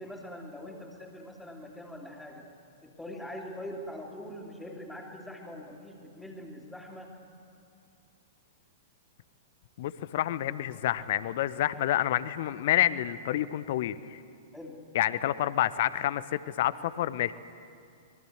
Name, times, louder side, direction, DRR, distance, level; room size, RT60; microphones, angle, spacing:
voice 1, 0.0-2.5 2.8-7.2 14.5-14.9, left 1 dB, 5° left, -5 dB, 3.0 m, -43 dB
voice 2, 9.8-14.2 14.9-17.3, left 13 dB, 50° left, 16 dB, 0.9 m, -28 dB
26.0 x 22.0 x 8.0 m, 2.5 s
figure-of-eight pair, 105°, 0 cm